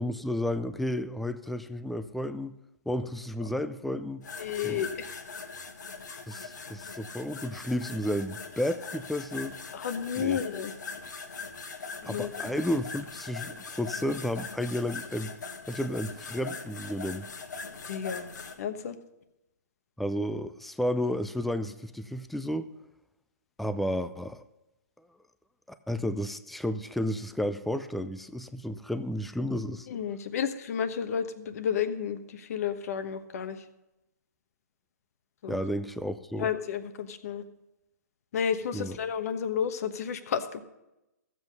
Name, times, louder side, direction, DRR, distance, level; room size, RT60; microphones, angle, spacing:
voice 1, 0.0-2.5 2.9-4.2 4.6-4.9 6.3-9.5 10.2-10.4 12.1-15.3 15.7-17.3 20.0-22.7 23.6-24.4 25.9-29.9 35.5-36.5 38.7-39.0, left 1 dB, ahead, 11 dB, 0.4 m, -32 dB
sound 1, 4.2-18.5, left 4 dB, 80° left, 1.7 m, -41 dB
voice 2, 4.4-5.1 9.7-10.7 12.0-12.3 17.8-18.3 18.6-19.0 29.9-33.6 35.4-35.6 36.4-37.4 38.3-40.6, left 7 dB, 55° left, 10 dB, 1.2 m, -31 dB
14.5 x 7.8 x 5.3 m, 0.93 s
hypercardioid pair, 140°, 10 cm